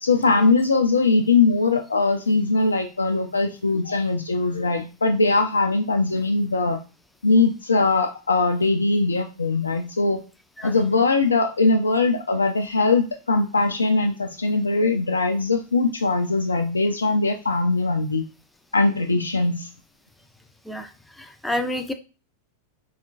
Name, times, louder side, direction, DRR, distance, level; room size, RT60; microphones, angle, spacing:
voice 1, 0.0-6.8 7.2-10.2 10.6-18.2 18.7-19.7, left 3 dB, 75° left, 5 dB, 0.3 m, -21 dB
voice 2, 21.2-21.9, left 1 dB, 5° left, 7 dB, 0.4 m, -28 dB
4.2 x 2.3 x 2.3 m, 0.33 s
figure-of-eight pair, 90°, 0 cm